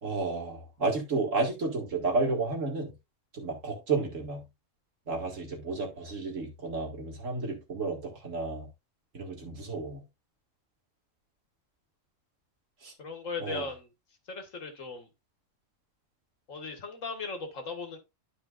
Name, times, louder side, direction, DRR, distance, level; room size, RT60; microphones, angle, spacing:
voice 1, 0.0-2.9 3.3-4.4 5.1-8.7 9.1-10.0 12.8-12.9 13.4-13.7, right 3 dB, 70° right, 2.4 m, -32 dB
voice 2, 13.0-13.9 14.3-15.1 16.5-18.0, left 3 dB, 80° left, 2.0 m, -37 dB
12.0 x 5.0 x 2.4 m
omnidirectional pair, 1.3 m